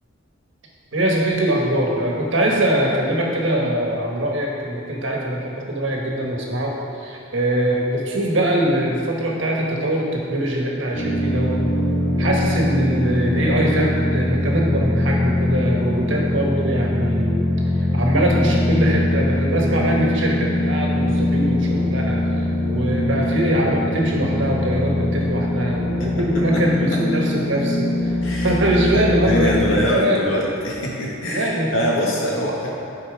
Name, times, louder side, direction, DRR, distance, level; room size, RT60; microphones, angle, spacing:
voice 1, 0.9-6.7 7.0-11.6 12.2-17.4 17.8-28.2 28.4-30.2 31.3-31.7, right 1 dB, 65° right, -2 dB, 1.5 m, -22 dB
sound 1, 10.9-29.9, left 1 dB, 10° left, 2.0 m, -22 dB
voice 2, 26.0-27.0 28.2-28.6 28.9-32.7, equal, 75° left, -3 dB, 1.7 m, -24 dB
11.0 x 4.5 x 4.9 m, 2.8 s
head